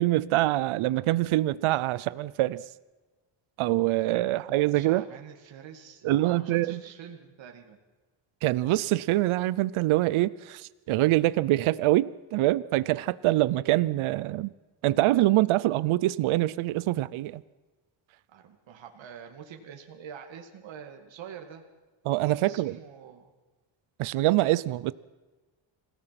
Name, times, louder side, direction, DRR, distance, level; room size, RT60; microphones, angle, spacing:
voice 1, 0.0-2.6 3.6-5.1 6.0-6.8 8.4-14.5 14.8-17.4 22.1-22.8 24.0-24.9, right 16 dB, 85° right, 0.7 m, -25 dB
voice 2, 4.7-7.8 18.3-21.6 22.4-23.3, right 8 dB, 65° right, 2.4 m, -45 dB
28.0 x 17.5 x 6.0 m
cardioid pair, 125°, 48 cm